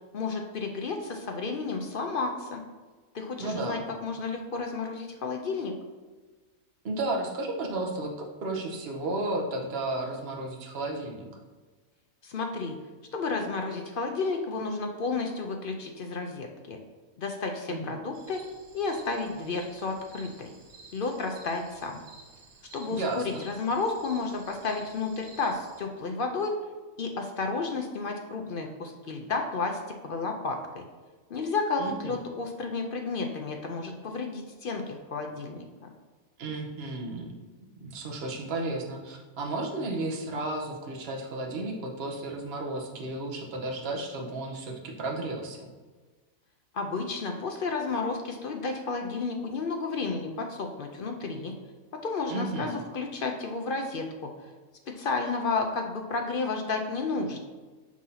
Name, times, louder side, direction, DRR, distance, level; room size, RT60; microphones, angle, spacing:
voice 1, 0.1-2.6 3.1-5.8 12.2-12.8 13.1-16.8 17.2-18.4 18.7-20.5 20.9-22.0 22.7-26.5 27.0-30.8 31.3-35.6 46.7-51.6 52.0-54.3 54.9-57.4, left 4 dB, 55° left, 3 dB, 0.6 m, -32 dB
voice 2, 3.4-3.9 6.8-11.3 17.7-17.8 22.9-23.4 31.8-32.2 36.4-37.3 37.8-45.7 52.3-52.8, right 2 dB, 50° right, 1 dB, 1.1 m, -33 dB
sound 1, 18.1-25.8, right 3 dB, 85° right, 1.3 m, -52 dB
7.3 x 2.7 x 5.6 m, 1.3 s
omnidirectional pair, 1.4 m